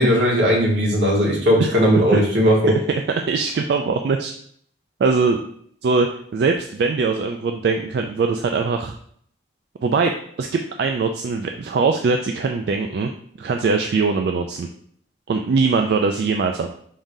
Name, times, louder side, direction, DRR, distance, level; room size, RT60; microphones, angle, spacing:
voice 1, 0.0-2.7, equal, 85° right, -2 dB, 1.4 m, -17 dB
voice 2, 3.3-4.3 5.0-5.4 5.8-6.1 6.3-8.9 9.8-10.1 10.4-13.1 13.4-14.7 15.3-16.7, right 4 dB, 65° right, 4 dB, 0.3 m, -21 dB
4.8 x 3.7 x 2.7 m, 0.63 s
head